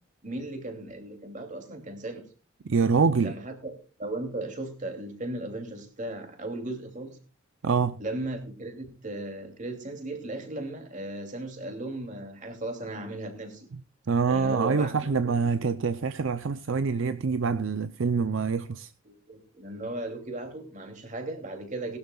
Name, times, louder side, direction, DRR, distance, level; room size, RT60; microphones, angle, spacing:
voice 1, 0.2-2.2 3.2-7.2 8.0-13.7 14.3-15.1 19.0-22.0, right 2 dB, 35° right, 2.7 m, -36 dB
voice 2, 2.6-3.3 7.6-8.0 14.1-18.9, right 5 dB, 65° right, 0.5 m, -25 dB
20.0 x 12.0 x 2.4 m
head